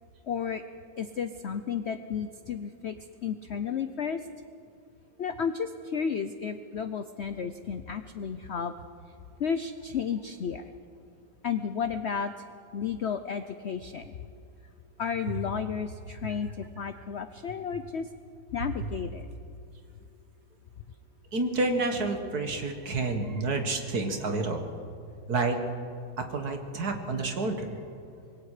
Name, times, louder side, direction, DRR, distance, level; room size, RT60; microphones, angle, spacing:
voice 1, 0.3-0.6 1.0-3.0 3.2-4.3 5.2-8.8 9.4-10.7 11.4-12.3 12.7-14.1 15.0-18.1 18.5-19.2, left 7 dB, 75° left, 10 dB, 0.6 m, -32 dB
voice 2, 21.3-24.6 25.3-25.6 26.2-27.8, right 3 dB, 55° right, 5 dB, 2.1 m, -29 dB
25.5 x 21.0 x 5.0 m, 2.4 s
omnidirectional pair, 2.0 m